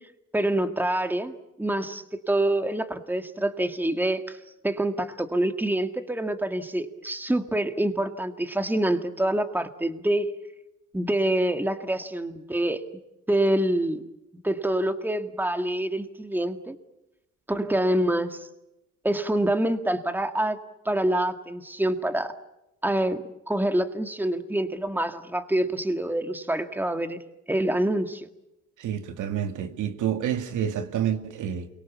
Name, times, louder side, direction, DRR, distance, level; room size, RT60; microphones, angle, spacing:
voice 1, 0.3-4.4 4.6-10.3 10.9-12.8 13.3-14.0 14.4-16.8 17.5-18.5 19.0-20.6 20.9-22.3 22.8-27.2 27.5-28.3, right 1 dB, 5° right, 2.0 m, -26 dB
voice 2, 28.8-31.7, right 9 dB, 80° right, 2.2 m, -28 dB
29.0 x 23.5 x 7.2 m
cardioid pair, 90°, 30 cm